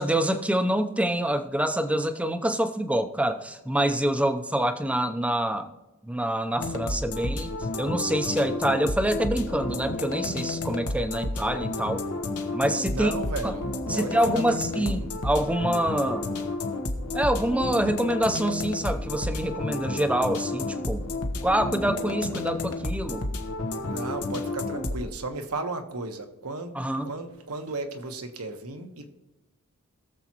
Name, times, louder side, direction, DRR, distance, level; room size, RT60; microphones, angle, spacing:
voice 1, 0.0-5.7 6.0-7.5 7.8-12.0 12.5-13.1 13.4-13.5 13.9-16.3 17.1-21.1 21.4-23.3 26.7-27.1, right 1 dB, 5° right, 8 dB, 0.6 m, -26 dB
sound 1, 6.6-25.1, left 2 dB, 85° left, 1.2 m, -31 dB
voice 2, 12.9-15.1 23.8-29.1, right 2 dB, 80° right, 6 dB, 1.2 m, -35 dB
21.0 x 7.2 x 3.0 m, 1.1 s
head